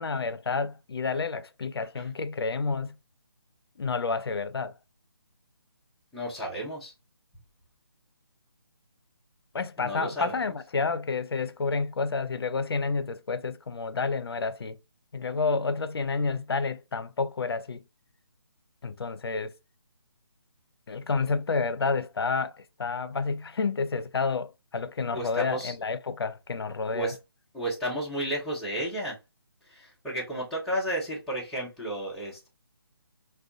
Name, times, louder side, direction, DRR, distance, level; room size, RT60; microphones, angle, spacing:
voice 1, 0.0-2.9 3.8-4.7 9.5-14.8 15.1-17.8 18.8-19.5 20.9-27.1, left 4 dB, 70° left, 0.4 m, -30 dB
voice 2, 6.1-6.9 9.8-10.5 25.1-25.7 26.9-27.2 27.5-29.2 29.7-32.5, right 1 dB, ahead, 0.3 m, -32 dB
2.5 x 2.2 x 2.3 m
figure-of-eight pair, 150°, 13 cm